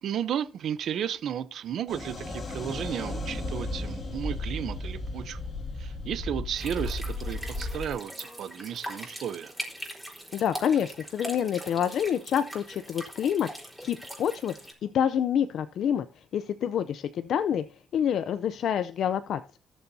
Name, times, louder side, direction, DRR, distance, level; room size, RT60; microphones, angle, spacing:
voice 1, 0.0-5.4 5.8-9.5, right 9 dB, 70° right, 0.7 m, -33 dB
sound 1, 1.9-7.9, left 2 dB, 40° left, 2.7 m, -34 dB
sound 2, 6.5-14.7, equal, ahead, 4.3 m, -41 dB
voice 2, 10.3-13.5 13.8-14.5 14.8-17.6 17.9-19.4, left 9 dB, 70° left, 0.5 m, -27 dB
18.0 x 7.0 x 2.7 m
cardioid pair, 90°, 0 cm